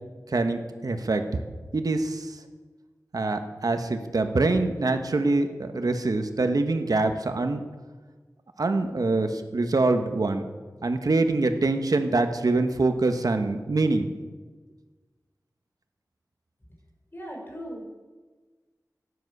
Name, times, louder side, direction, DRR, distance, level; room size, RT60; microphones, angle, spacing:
voice 1, 0.3-1.4 1.7-2.4 3.1-7.6 8.6-10.5 10.8-14.1, right 3 dB, 80° right, 7 dB, 1.3 m, -24 dB
voice 2, 17.1-18.0, equal, 35° left, -2 dB, 6.0 m, -38 dB
14.5 x 10.5 x 6.7 m, 1.3 s
wide cardioid pair, 60°, 6 cm